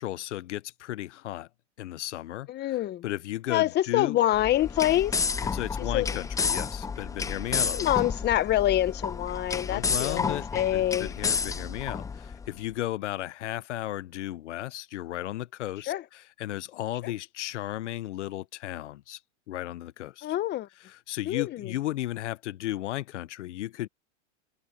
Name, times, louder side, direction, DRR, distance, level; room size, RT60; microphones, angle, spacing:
voice 1, 0.0-1.5 1.8-4.2 5.4-7.9 9.7-19.2 19.5-20.3 20.8-23.9, left 14 dB, 80° left, 1.2 m, -35 dB
voice 2, 2.5-3.0 3.5-5.2 5.9-6.2 7.7-11.1 15.9-16.0 17.0-17.1 20.2-20.7 21.3-21.7, left 13 dB, 30° left, 1.1 m, -26 dB
sound 1, 4.3-12.5, left 5 dB, 10° left, 0.6 m, -31 dB
open air
hypercardioid pair, 125°, 35 cm